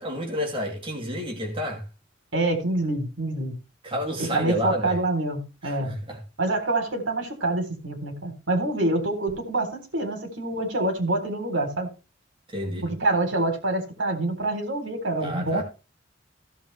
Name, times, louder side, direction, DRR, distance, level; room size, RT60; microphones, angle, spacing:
voice 1, 0.0-1.8 3.8-5.0 5.6-6.2 12.5-12.9 15.2-15.6, equal, 30° right, 2.5 m, -30 dB
voice 2, 2.3-3.6 4.2-5.9 6.4-11.9 12.8-15.6, right 2 dB, 85° right, 3.8 m, -26 dB
16.5 x 7.3 x 3.4 m
head